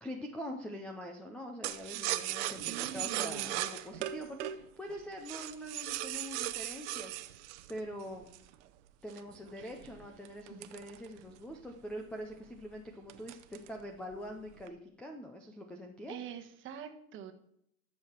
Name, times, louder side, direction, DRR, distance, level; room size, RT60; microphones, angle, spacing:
voice 1, 0.0-2.6 2.9-7.2 7.7-8.3 9.0-16.2, equal, 5° left, 4 dB, 0.5 m, -44 dB
sound 1, 1.6-8.5 9.1-11.5 11.9-12.0 12.3-12.6 13.1-13.8 14.1-14.7, right 14 dB, 50° right, 0.8 m, -38 dB
voice 2, 2.6-3.6 9.6-9.7 10.5-10.7 16.1-17.3, right 8 dB, 25° right, 5 dB, 1.3 m, -45 dB
12.5 x 6.8 x 5.9 m, 0.75 s
supercardioid pair, 140°, 44 cm